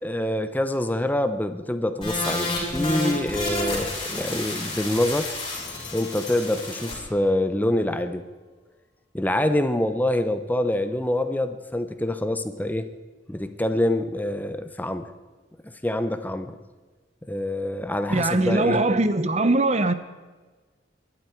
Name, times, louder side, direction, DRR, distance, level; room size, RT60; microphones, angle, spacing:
voice 1, 0.0-5.3 5.9-8.2 9.1-12.9 13.3-15.1 15.8-16.5 17.3-18.8, left 1 dB, 10° left, 9 dB, 0.8 m, -25 dB
sound 1, 2.0-6.9, left 2 dB, 30° left, 6.1 m, -30 dB
Bell, 5.1-7.3, left 9 dB, 70° left, 1.9 m, -44 dB
voice 2, 18.1-19.9, right 2 dB, 35° right, 12 dB, 0.8 m, -21 dB
23.5 x 11.5 x 4.6 m, 1.3 s
head